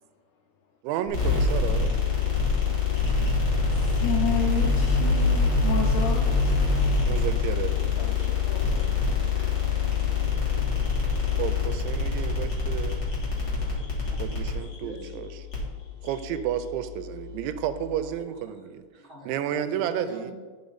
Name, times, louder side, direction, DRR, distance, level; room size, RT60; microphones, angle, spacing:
voice 1, 0.8-2.0 7.1-7.8 11.4-13.0 14.2-15.4 16.0-18.8 19.3-20.3, right 10 dB, 85° right, 10 dB, 2.9 m, -31 dB
sound 1, 1.1-18.1, left 4 dB, 40° left, 1.7 m, -25 dB
voice 2, 3.7-6.7 8.0-9.7, left 8 dB, 85° left, 2 dB, 2.3 m, -32 dB
voice 3, 13.5-13.9 14.8-15.4 18.0-18.3 18.9-20.3, left 1 dB, 25° right, -8 dB, 1.2 m, -44 dB
11.5 x 5.5 x 4.0 m, 1.5 s
omnidirectional pair, 5.3 m